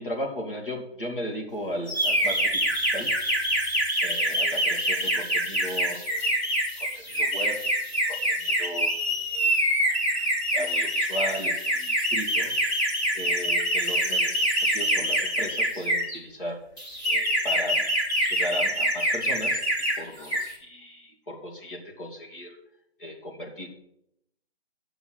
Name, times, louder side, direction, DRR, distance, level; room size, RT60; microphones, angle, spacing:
voice 1, 0.0-3.1 4.0-6.5 6.8-7.6 8.1-9.7 10.5-12.5 13.1-16.6 17.0-17.8 18.2-22.6 23.0-23.7, equal, 55° left, 0 dB, 2.8 m, -36 dB
sound 1, 1.9-16.2 16.8-20.0 20.2-20.5, equal, 15° left, 1.9 m, -25 dB
8.6 x 7.0 x 7.7 m, 0.79 s
hypercardioid pair, 170°, 32 cm